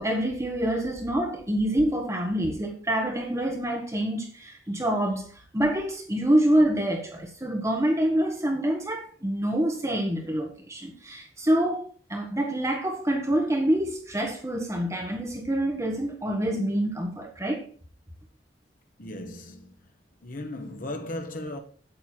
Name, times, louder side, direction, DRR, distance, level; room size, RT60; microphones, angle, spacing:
voice 1, 0.0-5.3 5.5-17.7, right 1 dB, 15° right, 1.5 m, -26 dB
voice 2, 19.0-19.9 20.2-21.6, left 1 dB, 50° left, 1.2 m, -36 dB
9.1 x 9.0 x 4.5 m
head